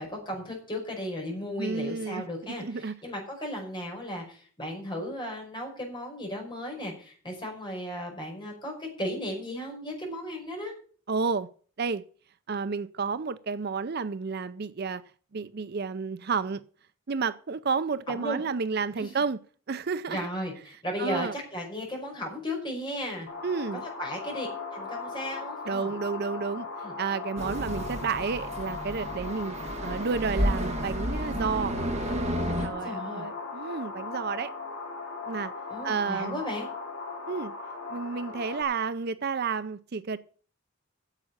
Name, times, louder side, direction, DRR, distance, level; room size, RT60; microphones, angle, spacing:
voice 1, 0.0-10.7 18.1-18.4 19.0-19.1 20.1-23.3 24.0-25.9 26.8-26.9 32.6-33.3 35.7-36.7, equal, 25° left, 5.5 m, -35 dB
voice 2, 1.6-2.9 11.1-11.5 11.8-12.0 12.5-15.0 15.3-16.6 17.1-19.4 19.7-20.3 21.0-21.3 23.4-23.8 25.7-26.7 27.0-29.5 29.8-31.8 32.6-34.5 35.3-35.5 35.8-36.4 37.3-37.5 37.9-40.2, right 5 dB, 50° right, 0.5 m, -31 dB
sound 1, 23.3-38.6, left 4 dB, 85° left, 3.6 m, -38 dB
sound 2, 27.4-32.7, equal, 30° right, 2.3 m, -31 dB
9.8 x 7.5 x 8.7 m
head